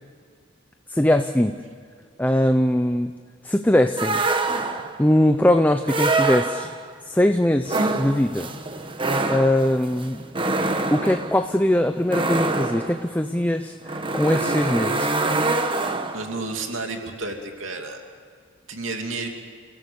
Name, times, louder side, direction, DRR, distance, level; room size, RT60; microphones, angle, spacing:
voice 1, 0.9-1.6 2.2-3.1 3.4-4.2 5.0-6.7 7.1-8.5 9.3-10.2 10.9-15.1, left 1 dB, 10° left, 6 dB, 0.6 m, -21 dB
sound 1, 4.0-5.0 5.8-6.9 7.6-16.4, right 2 dB, 25° right, 1.2 m, -25 dB
voice 2, 16.1-18.0 18.7-19.3, right 3 dB, 75° right, 3 dB, 2.7 m, -31 dB
29.5 x 16.0 x 7.0 m, 2.2 s
head